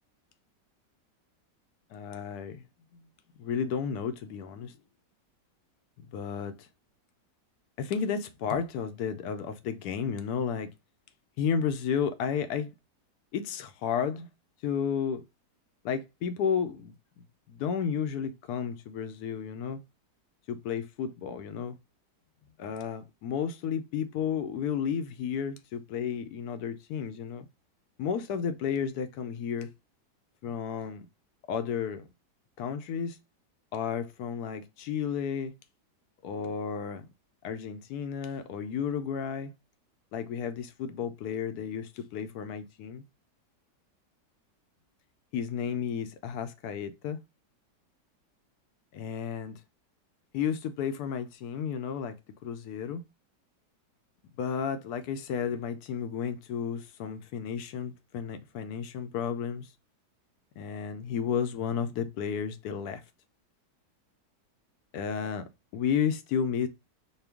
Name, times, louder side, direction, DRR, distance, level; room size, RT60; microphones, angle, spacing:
voice 1, 1.9-2.7 2.9-3.0 3.4-4.8 6.0-6.7 7.8-10.7 11.4-12.7 13.3-14.3 14.6-15.2 15.8-16.9 17.5-19.8 20.5-21.8 22.6-27.5 28.0-29.7 30.4-31.1 31.5-32.1 32.6-33.2 33.7-35.5 36.2-37.1 37.4-39.5 40.1-43.0 45.3-47.2 48.9-49.6 50.3-52.2 52.4-53.0 54.4-59.7 60.6-63.0 64.9-65.4 65.7-66.7, left 7 dB, 70° left, 1.0 m, -32 dB
4.3 x 2.3 x 3.4 m
omnidirectional pair, 1.9 m